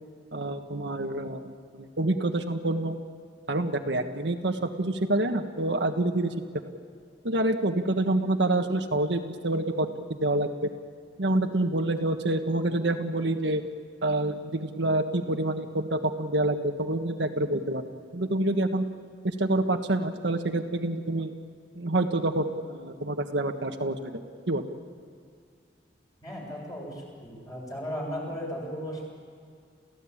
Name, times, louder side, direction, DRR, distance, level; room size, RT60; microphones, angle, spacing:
voice 1, 0.3-2.9 3.5-6.3 7.2-10.7 11.2-13.6 14.0-18.8 19.2-21.3 21.7-24.2 24.5-24.6, right 1 dB, 80° right, 5 dB, 1.5 m, -27 dB
voice 2, 26.2-29.0, equal, 20° left, -2 dB, 7.4 m, -36 dB
29.0 x 16.5 x 8.7 m, 2.2 s
head